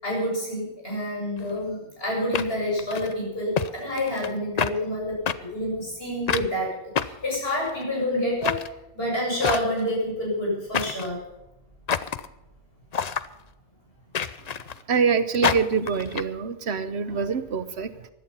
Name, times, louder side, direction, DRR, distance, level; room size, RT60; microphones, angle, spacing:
voice 1, 0.0-8.6 8.9-11.2, left 1 dB, 60° left, -4 dB, 7.8 m, -28 dB
sound 1, 1.4-1.5 2.3-3.1 3.6-3.7 4.0-4.3 4.6-4.7 5.3-5.4 6.3-6.5 7.0-7.8 8.4-8.7 9.4-9.9 10.7-11.1 11.9-12.3 12.9-13.3 14.1-14.8 15.4-16.2, left 7 dB, 45° left, 0.6 m, -27 dB
voice 2, 14.9-18.1, right 6 dB, 75° right, 12 dB, 1.2 m, -25 dB
16.5 x 11.5 x 5.7 m, 0.96 s
omnidirectional pair, 1.1 m